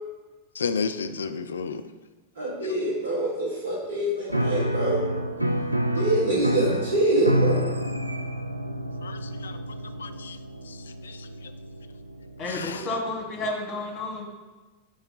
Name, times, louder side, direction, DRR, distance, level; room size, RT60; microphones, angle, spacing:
voice 1, 0.5-1.8 9.0-9.6 10.0-10.4 10.7-11.5 12.5-12.9, left 5 dB, 70° left, 11 dB, 0.3 m, -32 dB
voice 2, 2.3-5.0 5.9-7.6, right 1 dB, 65° right, -5 dB, 1.4 m, -25 dB
Piano, 4.3-12.8, right 1 dB, 90° right, 0.3 m, -29 dB
voice 3, 12.4-14.3, left 2 dB, 35° left, 2 dB, 1.5 m, -31 dB
5.4 x 3.3 x 5.5 m, 1.2 s
figure-of-eight pair, 90°, 0 cm